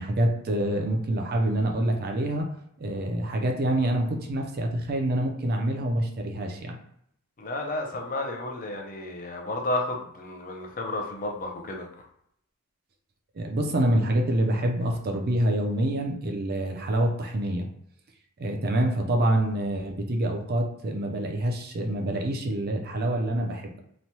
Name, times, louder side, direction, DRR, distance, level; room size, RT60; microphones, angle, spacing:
voice 1, 0.0-2.5 2.8-6.8 13.3-17.7 18.4-23.8, right 1 dB, 45° right, 3 dB, 0.5 m, -26 dB
voice 2, 7.4-11.9, left 2 dB, 40° left, 2 dB, 0.5 m, -32 dB
3.0 x 2.2 x 2.7 m, 0.72 s
head